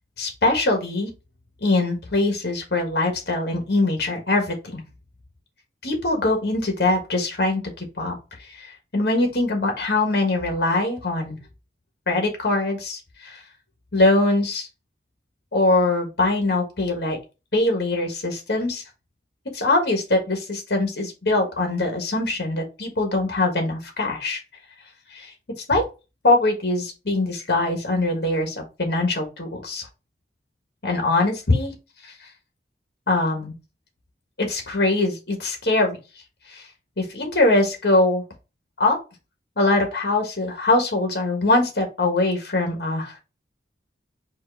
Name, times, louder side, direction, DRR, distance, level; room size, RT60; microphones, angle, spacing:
voice 1, 0.2-1.1 1.6-4.8 5.8-8.2 8.6-8.7 8.9-11.4 12.1-13.4 13.9-14.7 15.5-17.2 17.5-18.8 19.5-24.4 25.1-25.3 25.7-25.8 26.2-29.9 30.8-31.7 33.1-33.5 34.4-36.0 36.5-36.6 37.0-38.2 38.8-39.0 39.6-43.1, left 2 dB, 65° left, 3 dB, 1.3 m, -22 dB
4.6 x 2.5 x 4.4 m, 0.29 s
head